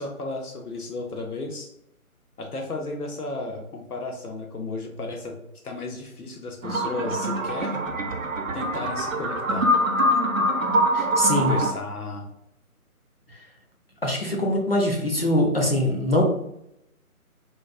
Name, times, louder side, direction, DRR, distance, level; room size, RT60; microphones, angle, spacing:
voice 1, 0.0-1.7 2.4-5.4 5.6-7.8 8.5-9.7 11.3-12.2, left 3 dB, 80° left, 3 dB, 0.8 m, -33 dB
sound 1, 6.6-11.7, equal, 65° right, 0.6 m, -24 dB
voice 2, 10.9-11.5 14.0-16.2, left 1 dB, 45° left, -1 dB, 0.5 m, -23 dB
3.9 x 2.0 x 2.4 m, 0.77 s
figure-of-eight pair, 155°, 44 cm